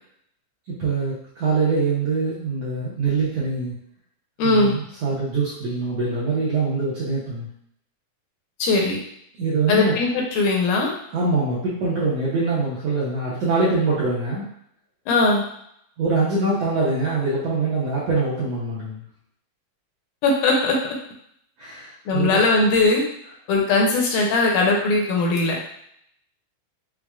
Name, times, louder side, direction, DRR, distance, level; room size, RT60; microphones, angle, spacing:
voice 1, 0.7-3.7 4.4-7.5 9.4-9.9 11.1-14.5 16.0-19.0 21.6-22.4, right 3 dB, 75° right, -8 dB, 1.4 m, -24 dB
voice 2, 4.4-4.8 8.6-9.0 9.7-10.9 15.1-15.4 20.2-20.8 22.1-23.0 23.5-25.6, left 3 dB, 80° left, -1 dB, 2.1 m, -19 dB
5.9 x 2.1 x 2.3 m, 0.71 s
omnidirectional pair, 3.7 m